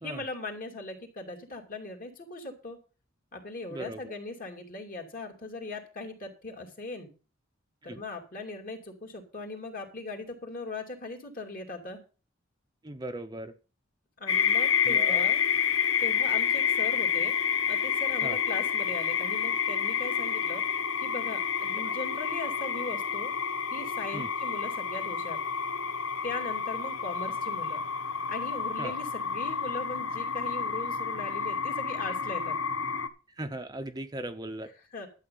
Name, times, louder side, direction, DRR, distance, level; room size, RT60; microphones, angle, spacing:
voice 1, 0.0-2.8 3.3-7.1 7.8-12.0 14.2-15.4 16.0-17.3 17.7-20.6 21.0-23.3 23.7-25.4 26.2-27.8 28.3-32.6 34.9-35.1, left 2 dB, 45° left, 3 dB, 2.8 m, -39 dB
voice 2, 3.7-4.1 7.8-8.0 12.8-13.6 14.8-15.3 18.2-18.4 21.8-21.9 24.1-24.3 28.8-29.0 33.3-34.7, right 1 dB, 20° right, 7 dB, 0.7 m, -38 dB
sound 1, 14.3-33.1, left 7 dB, 85° left, 1.1 m, -29 dB
12.0 x 7.7 x 5.5 m, 0.34 s
head